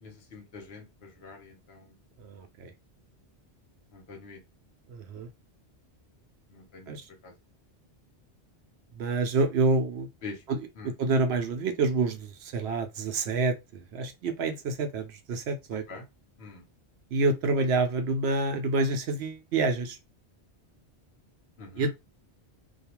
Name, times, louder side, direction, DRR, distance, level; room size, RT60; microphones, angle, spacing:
voice 1, 0.0-1.9 3.9-4.4 6.5-6.9 7.2-7.3 10.2-10.4 10.8-10.9 15.9-16.0 16.4-16.6 21.6-21.9, left 3 dB, 70° left, 1.1 m, -44 dB
voice 2, 2.2-2.7 4.9-5.3 6.9-7.0 9.0-10.1 10.5-10.7 11.0-15.8 17.1-20.0 21.8-21.9, right 3 dB, 75° right, 0.8 m, -28 dB
2.4 x 2.3 x 2.9 m
omnidirectional pair, 1.1 m